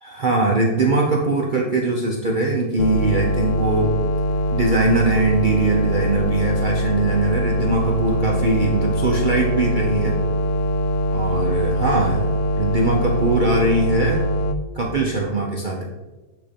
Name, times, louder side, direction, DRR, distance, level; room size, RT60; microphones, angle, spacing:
voice 1, 0.0-3.9 4.5-10.2 11.1-12.2 12.6-14.2 14.7-15.8, right 2 dB, 45° right, -1 dB, 0.8 m, -21 dB
sound 1, 2.8-14.5, equal, 75° left, 0.9 m, -22 dB
8.8 x 3.0 x 5.1 m, 1.2 s
omnidirectional pair, 1.4 m